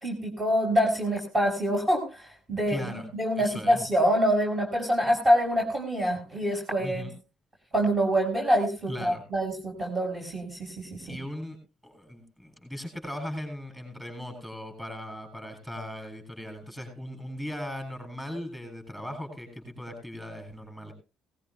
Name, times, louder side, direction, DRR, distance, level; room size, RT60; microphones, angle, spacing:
voice 1, 0.0-2.8 3.1-7.1 7.7-11.2, equal, 25° right, -1 dB, 5.7 m, -26 dB
voice 2, 2.7-3.1 3.4-3.8 6.8-7.1 8.9-9.2 11.1-11.6 11.8-20.9, left 1 dB, 5° right, 4 dB, 7.7 m, -38 dB
19.0 x 16.5 x 2.4 m, 0.32 s
cardioid pair, 90°, 0 cm